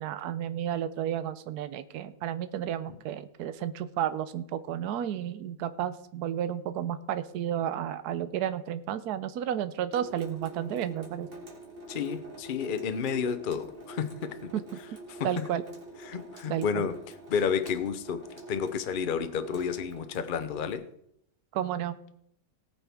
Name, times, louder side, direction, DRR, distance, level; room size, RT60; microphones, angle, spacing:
voice 1, 0.0-11.3 14.5-14.8 15.2-15.6 16.5-16.9 21.5-22.0, right 10 dB, 65° right, 1.2 m, -32 dB
Water tap faucet / Sink (filling or washing) / Drip, 9.9-20.7, right 1 dB, 30° right, 2.4 m, -45 dB
voice 2, 11.9-14.5 15.1-15.5 16.0-18.2 18.5-20.9, left 6 dB, 55° left, 0.5 m, -31 dB
19.0 x 8.7 x 3.5 m
omnidirectional pair, 1.9 m